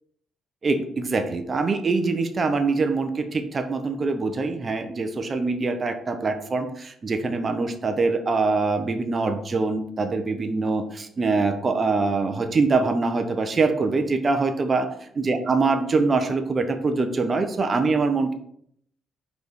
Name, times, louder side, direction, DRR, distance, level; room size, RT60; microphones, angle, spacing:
voice 1, 0.6-18.3, right 3 dB, 35° right, 7 dB, 0.7 m, -24 dB
5.0 x 4.0 x 4.9 m, 0.67 s
cardioid pair, 90°, 0 cm